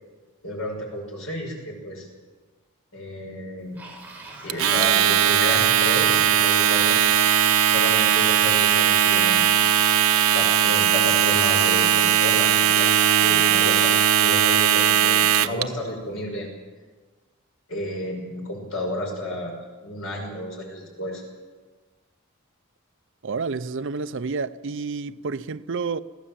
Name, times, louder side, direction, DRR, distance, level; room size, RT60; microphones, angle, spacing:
voice 1, 0.4-2.1 2.9-3.8 4.4-7.0 7.7-9.5 10.3-16.5 17.7-19.5 19.8-21.2, left 1 dB, 70° left, 6.0 m, -32 dB
sound 1, 3.7-14.1, right 2 dB, 10° right, 4.8 m, -43 dB
Domestic sounds home sounds, 4.5-15.6, right 9 dB, 90° right, 0.8 m, -19 dB
voice 2, 23.2-26.0, right 4 dB, 60° right, 0.6 m, -29 dB
22.5 x 15.5 x 7.6 m
head